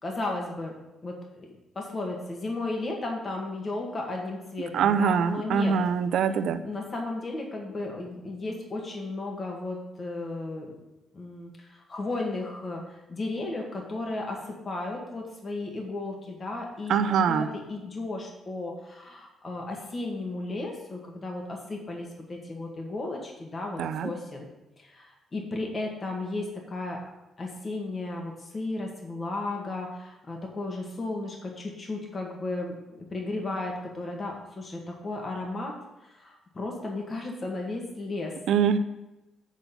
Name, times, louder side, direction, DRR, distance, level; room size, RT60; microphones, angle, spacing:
voice 1, 0.0-0.7 1.0-5.8 6.6-10.7 11.1-24.5 24.8-27.0 27.4-35.8 36.0-38.3, left 2 dB, 35° left, 0 dB, 1.7 m, -34 dB
voice 2, 4.7-6.6 16.9-17.5 23.8-24.1 38.5-38.8, right 7 dB, 75° right, 11 dB, 0.5 m, -24 dB
8.3 x 4.1 x 6.9 m, 1.0 s
cardioid pair, 90°, 0 cm